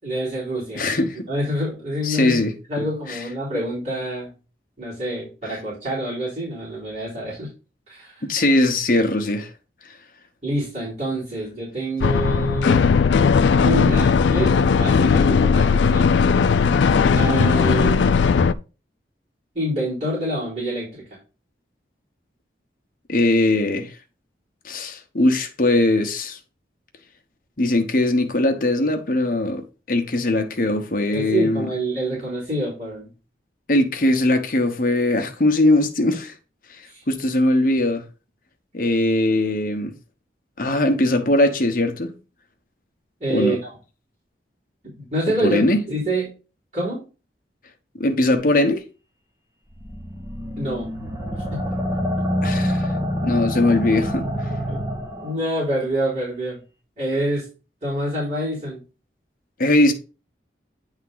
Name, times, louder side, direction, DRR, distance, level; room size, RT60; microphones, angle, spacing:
voice 1, 0.0-0.8 1.3-2.4 2.7-4.3 4.8-7.5 7.9-8.2 10.4-13.0 13.6-16.1 17.1-18.0 19.5-21.0 31.1-33.1 36.8-37.0 43.2-43.7 45.0-46.3 46.7-47.0 50.6-50.9 51.5-51.6 54.7-54.8 55.2-56.6 57.0-57.4 57.8-58.8, right 1 dB, 40° right, 3.9 m, -26 dB
voice 2, 0.8-1.2 2.0-3.2 8.2-9.5 23.1-23.9 24.6-26.4 27.6-31.7 33.7-36.3 37.1-38.0 38.7-39.9 40.6-42.1 43.3-43.6 45.4-45.8 47.9-48.8 52.4-52.9 53.2-54.2 59.6-59.9, left 1 dB, 50° left, 1.0 m, -20 dB
sound 1, 12.0-18.5, left 5 dB, 85° left, 0.4 m, -17 dB
sound 2, 49.8-55.4, equal, 20° right, 1.2 m, -26 dB
9.5 x 3.6 x 3.8 m
head